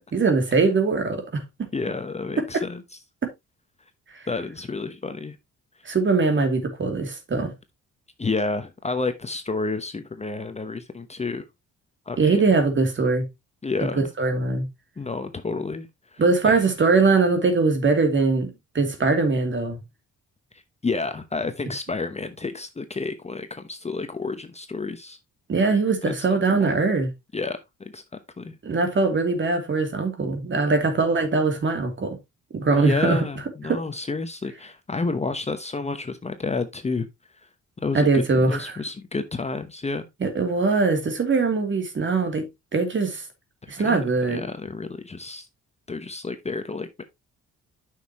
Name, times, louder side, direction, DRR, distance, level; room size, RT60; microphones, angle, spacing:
voice 1, 0.1-1.4 3.2-3.3 5.8-7.5 12.2-13.2 14.2-14.7 16.2-19.8 25.5-27.1 28.6-32.2 32.5-33.2 33.7-33.8 37.9-38.8 40.2-43.2 43.7-44.4, right 4 dB, 40° right, 2.8 m, -21 dB
voice 2, 1.7-2.8 4.3-5.4 8.2-11.5 12.1-12.4 13.6-14.1 15.0-16.7 20.8-25.2 26.1-26.7 27.3-27.6 27.9-28.0 28.4-28.6 32.7-37.1 37.8-40.1 43.6-45.5 45.9-47.0, left 3 dB, 20° left, 1.0 m, -30 dB
9.1 x 6.5 x 3.0 m
cardioid pair, 90°, 30 cm